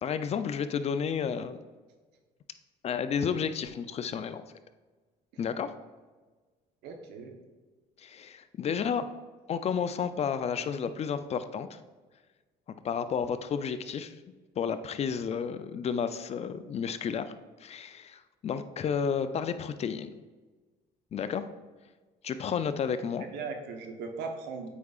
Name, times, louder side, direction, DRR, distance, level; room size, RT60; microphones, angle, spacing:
voice 1, 0.0-1.6 2.8-4.4 5.4-5.7 8.0-9.1 9.5-11.8 12.8-14.1 14.6-17.3 17.6-20.1 21.1-21.4 22.2-23.2, left 7 dB, 40° left, 11 dB, 0.4 m, -31 dB
voice 2, 6.8-7.3 23.2-24.7, right 4 dB, 90° right, 5 dB, 0.9 m, -38 dB
8.2 x 4.8 x 2.4 m, 1.3 s
cardioid pair, 110°, 17 cm